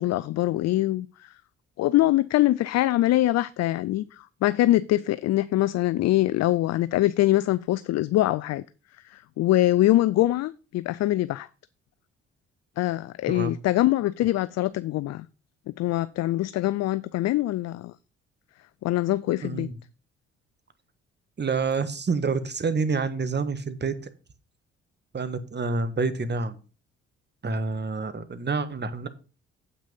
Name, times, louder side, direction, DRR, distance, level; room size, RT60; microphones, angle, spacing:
voice 1, 0.0-1.3 1.8-8.6 9.0-11.5 12.8-15.3 15.8-17.9 18.8-19.7, left 15 dB, 55° left, 0.5 m, -23 dB
voice 2, 19.4-19.8 21.4-23.9 25.1-26.6 27.4-29.1, right 4 dB, 35° right, 1.4 m, -28 dB
8.2 x 6.1 x 5.4 m
hypercardioid pair, 45°, 32 cm